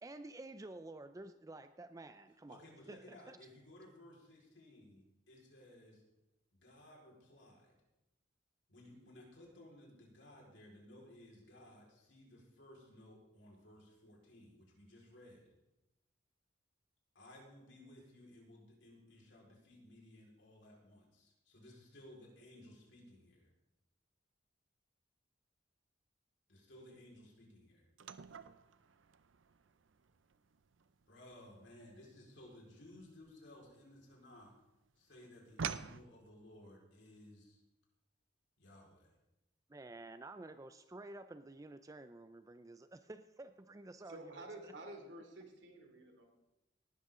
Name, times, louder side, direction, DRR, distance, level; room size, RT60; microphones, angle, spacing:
voice 1, 0.0-2.6 2.9-3.4 39.7-44.7, right 2 dB, 20° right, 10 dB, 0.4 m, -51 dB
voice 2, 2.5-6.0 6.5-7.7 8.7-15.5 17.1-23.5 26.5-27.9 31.1-34.5 35.0-37.6 38.6-39.1, left 1 dB, 70° left, -2 dB, 4.6 m, -58 dB
sound 1, 28.0-34.4 34.8-36.0, right 6 dB, 90° right, 0.6 m, -47 dB
voice 3, 44.1-46.2, right 1 dB, 65° right, 4 dB, 2.8 m, -50 dB
18.5 x 12.0 x 3.8 m, 0.96 s
head